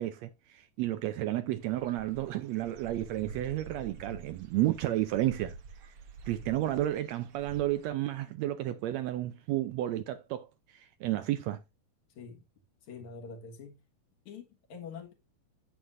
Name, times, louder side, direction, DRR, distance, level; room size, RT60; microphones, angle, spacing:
voice 1, 0.0-5.6 5.8-5.9 6.3-10.5 10.7-11.6, right 14 dB, 80° right, 1.6 m, -32 dB
Dog / Bird, 1.6-7.9, right 4 dB, 65° right, 1.5 m, -49 dB
voice 2, 12.1-12.4 12.8-13.8 14.3-15.1, left 5 dB, 70° left, 2.8 m, -45 dB
9.3 x 8.1 x 2.6 m
omnidirectional pair, 3.5 m